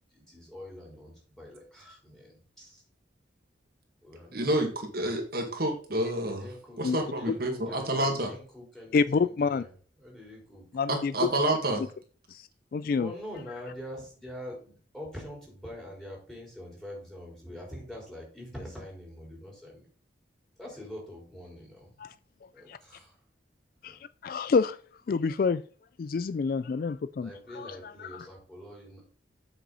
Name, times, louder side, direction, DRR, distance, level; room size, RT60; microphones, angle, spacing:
voice 1, 0.1-2.8 4.0-4.4 6.2-9.7 10.0-10.7 12.8-19.9 20.6-21.9 22.5-23.2 23.9-24.0 27.2-29.2, left 1 dB, ahead, -2 dB, 4.1 m, -44 dB
voice 2, 4.3-6.4 6.8-8.3 10.9-11.8, right 1 dB, 50° right, 2 dB, 2.0 m, -28 dB
voice 3, 8.9-9.6 10.7-11.3 12.3-12.4 12.7-13.1 22.0-22.1 22.7-22.8 23.8-24.0 24.2-24.8 25.1-25.6 26.0-28.3, left 5 dB, 50° left, 15 dB, 0.3 m, -28 dB
8.2 x 6.2 x 3.9 m, 0.42 s
head